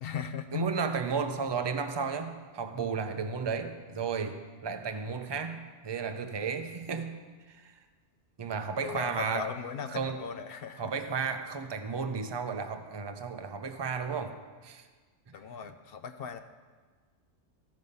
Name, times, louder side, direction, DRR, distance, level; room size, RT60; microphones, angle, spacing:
voice 1, 0.0-0.7 8.8-10.9 15.3-16.4, left 7 dB, 60° left, 10 dB, 0.7 m, -38 dB
voice 2, 0.5-7.2 7.5-7.7 8.4-9.5 9.9-10.2 10.8-14.4 14.6-14.9, right 5 dB, 35° right, 8 dB, 0.4 m, -33 dB
14.5 x 5.3 x 5.4 m, 1.5 s
omnidirectional pair, 1.2 m